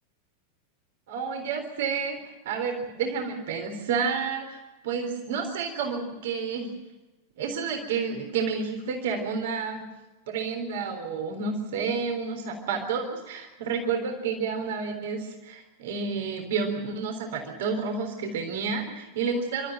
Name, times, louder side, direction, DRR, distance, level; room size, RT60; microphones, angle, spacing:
voice 1, 1.1-6.7 7.4-9.8 10.3-19.7, right 5 dB, 55° right, 3 dB, 3.8 m, -30 dB
28.5 x 13.5 x 9.1 m, 1.1 s
figure-of-eight pair, 90°, 0 cm